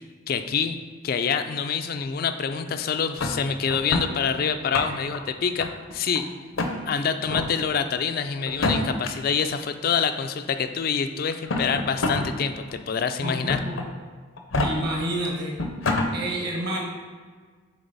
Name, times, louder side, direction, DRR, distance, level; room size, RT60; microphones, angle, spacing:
voice 1, 0.3-0.8 1.0-6.3 6.9-13.6, left 6 dB, 45° left, 8 dB, 0.3 m, -26 dB
sound 1, 3.2-4.1 4.6-5.2 5.6-6.2 6.6-6.7 7.2-7.5 8.5-9.1 10.2-10.3 11.3-12.3 12.7-12.8 13.5-13.9 14.4-14.7 15.3-15.4 15.6-16.1, left 2 dB, 75° left, 0.7 m, -26 dB
voice 2, 13.2-13.8 14.6-15.5 16.1-16.8, right 1 dB, 50° right, -1 dB, 1.2 m, -29 dB
6.7 x 4.0 x 4.0 m, 1.5 s
head